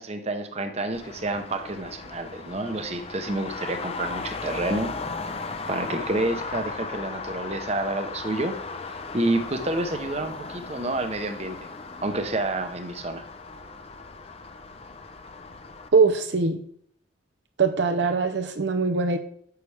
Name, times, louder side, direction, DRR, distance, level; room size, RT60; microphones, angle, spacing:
voice 1, 0.0-4.9 5.3-8.6 9.1-11.7 12.0-13.2, right 2 dB, 35° right, 0.9 m, -29 dB
Traffic noise roadway noise, 0.9-15.9, left 4 dB, 30° left, 0.6 m, -37 dB
voice 2, 15.9-16.6 17.6-19.2, right 4 dB, 65° right, 0.7 m, -22 dB
9.4 x 6.8 x 3.4 m
head